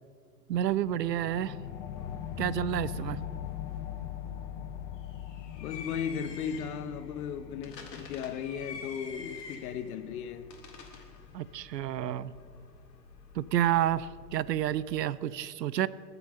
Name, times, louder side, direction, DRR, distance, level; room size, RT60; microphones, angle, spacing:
sound 1, 0.5-11.6, left 9 dB, 20° left, 0.3 m, -42 dB
voice 1, 0.5-1.6 2.4-3.2 11.3-12.4 13.4-15.9, right 11 dB, 85° right, 0.6 m, -29 dB
sound 2, 2.0-15.0, left 5 dB, 80° left, 2.0 m, -49 dB
voice 2, 5.6-10.5, left 7 dB, 60° left, 1.0 m, -36 dB
20.0 x 6.9 x 5.5 m
hypercardioid pair, 110°, 49 cm